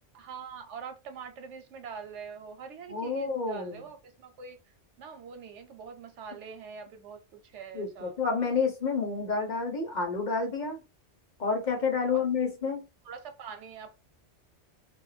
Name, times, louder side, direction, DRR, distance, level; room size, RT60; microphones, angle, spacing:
voice 1, 0.1-4.6 5.0-8.2 12.0-12.3 13.0-14.0, right 6 dB, 90° right, 1.0 m, -44 dB
voice 2, 2.9-3.8 7.7-10.8 11.4-12.8, left 4 dB, 45° left, 0.8 m, -29 dB
2.4 x 2.2 x 3.1 m
omnidirectional pair, 1.2 m